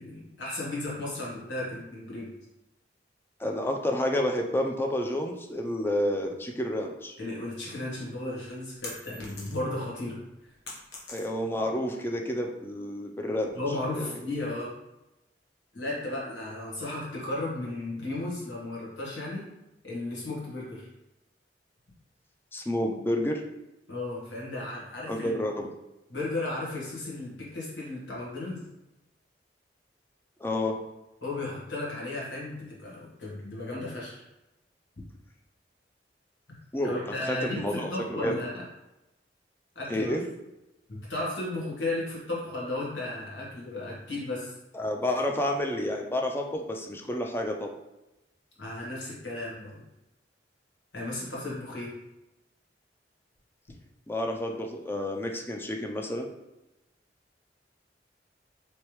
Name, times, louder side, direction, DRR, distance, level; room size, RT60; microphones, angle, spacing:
voice 1, 0.0-2.3 7.2-10.2 13.5-14.7 15.7-19.5 19.8-20.9 23.9-25.3 26.1-28.6 31.2-34.3 36.8-38.6 39.7-40.1 40.9-44.5 48.6-49.8 50.9-51.9, left 2 dB, 85° left, -6 dB, 1.5 m, -34 dB
voice 2, 3.4-7.2 11.1-13.5 14.0-14.2 22.5-23.4 25.1-25.7 30.4-30.8 36.7-38.4 39.9-40.2 44.7-47.8 54.1-56.3, left 1 dB, 15° left, 2 dB, 0.4 m, -30 dB
sound 1, 8.8-9.8 10.2-11.7, left 2 dB, 65° left, 0.9 m, -43 dB
3.4 x 3.1 x 3.0 m, 0.94 s
head